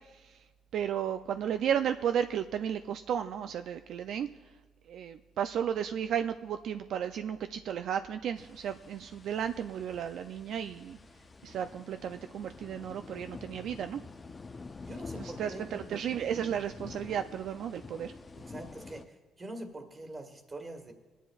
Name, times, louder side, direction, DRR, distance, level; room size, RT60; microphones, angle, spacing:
voice 1, 0.7-4.3 4.9-11.0 11.4-14.0 15.2-18.1, right 9 dB, 75° right, 8 dB, 0.3 m, -33 dB
sound 1, 8.4-19.0, left 4 dB, 30° left, 0.5 m, -48 dB
voice 2, 14.8-15.9 18.3-20.9, right 2 dB, 30° right, 5 dB, 1.7 m, -44 dB
24.0 x 10.0 x 2.4 m, 1.3 s
cardioid pair, 90°, 0 cm